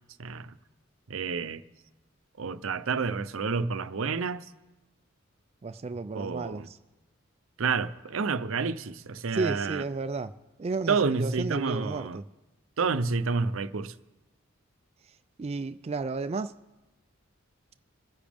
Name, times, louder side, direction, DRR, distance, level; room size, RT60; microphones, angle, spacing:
voice 1, 0.2-0.5 1.1-1.6 2.4-4.5 6.1-6.7 7.6-9.8 10.9-12.2 12.8-13.9, right 4 dB, 75° right, 0.6 m, -29 dB
voice 2, 5.6-6.8 9.3-10.3 10.6-12.2 15.4-16.5, right 3 dB, 30° right, 0.4 m, -32 dB
26.0 x 10.0 x 3.5 m
head